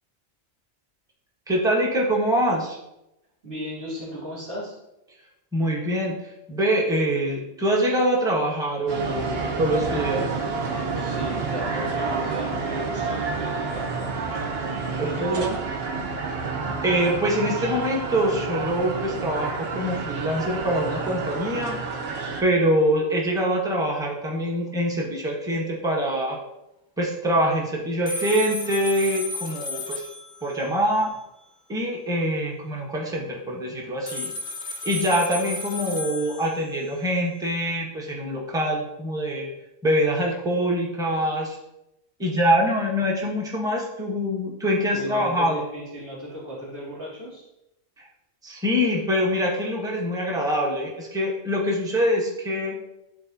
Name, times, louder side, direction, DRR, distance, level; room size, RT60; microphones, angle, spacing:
voice 1, 1.5-2.8 5.5-10.3 15.0-15.4 16.8-21.8 22.4-26.4 27.0-30.1 30.4-31.1 31.7-34.3 34.8-39.5 39.8-41.6 42.2-45.6 48.4-52.8, equal, 5° right, -2 dB, 1.0 m, -24 dB
voice 2, 3.4-4.7 10.9-14.2 15.0-15.6 44.9-47.4, right 1 dB, 85° right, -12 dB, 2.8 m, -35 dB
sound 1, 8.9-22.4, right 4 dB, 65° right, 1.1 m, -29 dB
sound 2, 28.1-31.4 34.1-37.4, left 2 dB, 25° left, 0.7 m, -34 dB
11.5 x 4.0 x 2.7 m, 0.88 s
omnidirectional pair, 1.1 m